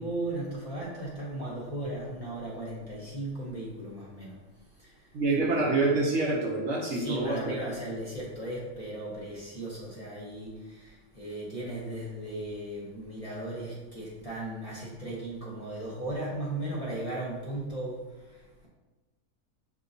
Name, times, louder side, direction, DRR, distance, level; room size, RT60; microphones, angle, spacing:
voice 1, 0.0-4.4 4.8-5.1 5.4-5.8 6.9-18.0 18.3-18.7, right 1 dB, 30° left, -6 dB, 0.9 m, -36 dB
voice 2, 5.1-7.6, right 3 dB, 60° right, -3 dB, 0.9 m, -27 dB
6.9 x 2.8 x 2.6 m, 1.2 s
omnidirectional pair, 1.6 m